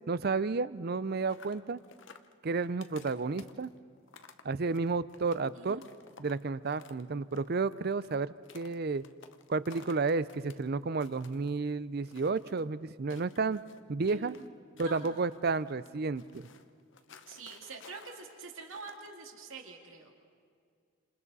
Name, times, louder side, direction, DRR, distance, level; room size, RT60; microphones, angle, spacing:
voice 1, 0.1-1.8 2.4-3.7 4.4-5.8 6.2-9.0 9.5-13.6 13.9-14.3 14.8-16.4, right 4 dB, 45° right, 17 dB, 0.5 m, -31 dB
sound 1, 1.1-7.0 7.3-10.6 10.9-11.5 12.0-12.6 13.1-14.5 14.8-19.1, left 5 dB, 60° left, 0.8 m, -55 dB
voice 2, 14.1-14.5 14.8-15.3 17.3-20.1, right 3 dB, 70° right, 2 dB, 2.3 m, -46 dB
29.5 x 27.0 x 4.1 m, 2.2 s
head